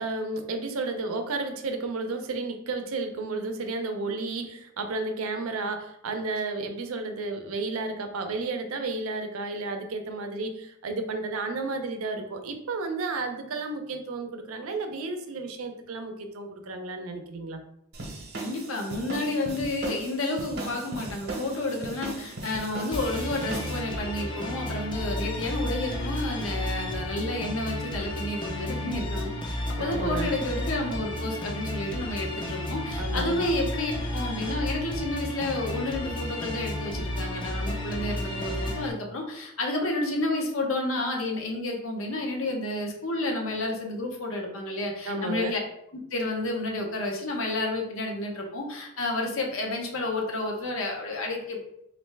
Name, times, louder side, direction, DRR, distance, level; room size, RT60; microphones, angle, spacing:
voice 1, 0.0-17.6 29.8-30.3 33.0-33.5 45.1-45.5, right 3 dB, 90° right, 6 dB, 0.5 m, -32 dB
sound 1, 17.9-23.8, right 2 dB, 50° right, 0.8 m, -37 dB
voice 2, 18.4-45.6 46.1-51.6, left 2 dB, 70° left, 1 dB, 0.8 m, -30 dB
sound 2, 22.9-38.9, left 1 dB, 20° left, 0.5 m, -32 dB
3.1 x 2.5 x 3.3 m, 0.76 s
head